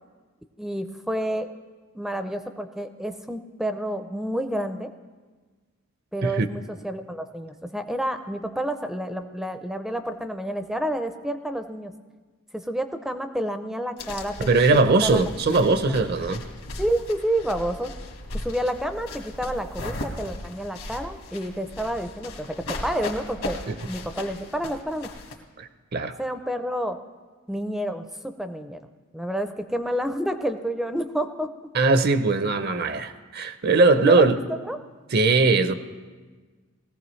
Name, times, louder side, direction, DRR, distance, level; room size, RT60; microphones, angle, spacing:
voice 1, 0.6-1.5 1.9-4.9 6.1-11.9 12.5-14.4 15.0-15.2 15.5-15.7 16.8-17.9 18.3-23.6 23.9-25.1 26.2-27.0 27.5-28.8 29.1-31.5 34.0-34.8, right 1 dB, ahead, 8 dB, 0.4 m, -29 dB
sound 1, 14.0-25.3, left 2 dB, 75° left, 1.6 m, -37 dB
voice 2, 14.5-16.4 23.7-23.8 25.6-26.2 31.7-34.4 35.1-35.7, right 3 dB, 45° right, 11 dB, 0.6 m, -20 dB
20.0 x 15.0 x 3.2 m, 1.4 s
head